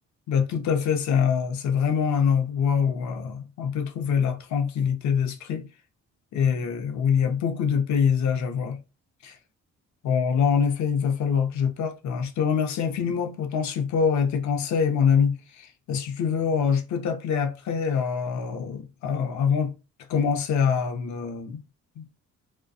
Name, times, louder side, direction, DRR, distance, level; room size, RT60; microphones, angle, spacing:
voice 1, 0.3-5.7 6.3-8.8 9.2-9.4 10.0-19.7 20.1-21.6 22.0-22.1, left 7 dB, 65° left, 0.6 m, -24 dB
2.3 x 2.2 x 2.6 m
cardioid pair, 90°, 30 cm